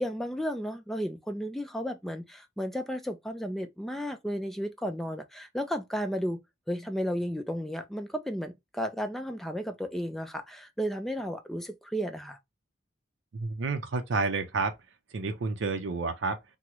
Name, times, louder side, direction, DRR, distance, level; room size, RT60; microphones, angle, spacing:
voice 1, 0.0-6.4 6.7-12.4, equal, ahead, 0.3 m, -33 dB
voice 2, 13.3-14.7 15.1-16.4, right 3 dB, 65° right, 0.5 m, -30 dB
3.5 x 2.0 x 2.8 m
head